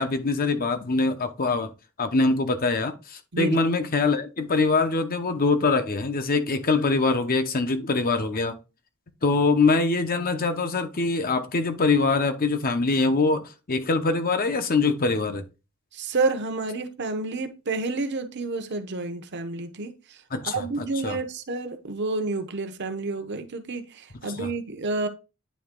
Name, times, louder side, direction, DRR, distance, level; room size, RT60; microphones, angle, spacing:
voice 1, 0.0-1.7 2.0-8.6 9.2-15.4 20.3-20.7 21.0-21.2 24.2-24.5, left 3 dB, 45° left, 0.8 m, -23 dB
voice 2, 15.9-19.9 20.5-25.1, right 3 dB, 55° right, 0.9 m, -29 dB
9.3 x 3.4 x 3.7 m
head